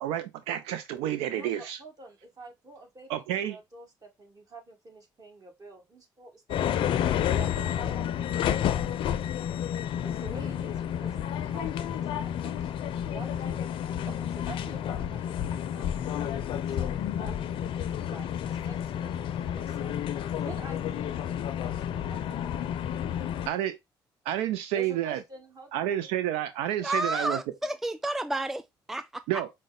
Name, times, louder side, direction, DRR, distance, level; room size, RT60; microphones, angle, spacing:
voice 1, 0.0-1.8 3.1-3.6 23.5-23.8 24.3-25.2 25.7-27.4 29.3-29.5, right 12 dB, 85° right, 0.4 m, -30 dB
voice 2, 1.3-6.7 7.3-9.5 10.0-12.8 13.1-13.7 14.1-17.7 18.1-20.0 20.4-22.8 24.7-26.1, right 3 dB, 40° right, 1.8 m, -48 dB
sound 1, 6.5-23.5, left 10 dB, 65° left, 0.5 m, -30 dB
voice 3, 26.8-28.6 28.9-29.2, right 1 dB, 5° right, 0.3 m, -30 dB
5.0 x 2.1 x 3.7 m
hypercardioid pair, 55°, 9 cm